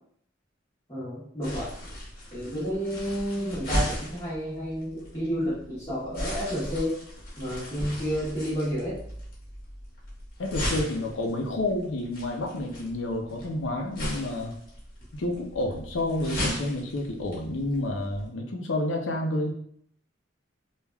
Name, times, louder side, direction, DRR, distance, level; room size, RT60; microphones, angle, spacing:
voice 1, 0.9-1.7 2.3-7.0 7.4-9.0, equal, 20° left, -14 dB, 1.0 m, -30 dB
sound 1, 1.4-18.3, equal, 50° left, 1.0 m, -37 dB
voice 2, 10.4-14.5 15.2-19.5, left 1 dB, 75° left, 3 dB, 0.5 m, -29 dB
3.3 x 2.3 x 2.2 m, 0.65 s
head